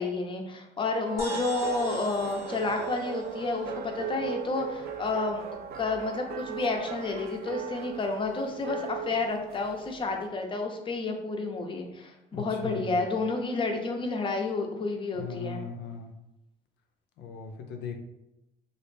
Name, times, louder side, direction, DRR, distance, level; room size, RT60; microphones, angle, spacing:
voice 1, 0.0-5.4 5.7-15.6, left 3 dB, 30° left, 4 dB, 0.5 m, -30 dB
sound 1, 1.1-10.2, right 7 dB, 65° right, 0.4 m, -38 dB
sound 2, 1.2-4.9, right 1 dB, 15° right, 0.7 m, -41 dB
voice 2, 12.3-13.0 15.1-16.1 17.2-18.0, left 6 dB, 80° left, 4 dB, 0.5 m, -38 dB
3.0 x 2.4 x 3.2 m, 0.91 s
cardioid pair, 110°, 17 cm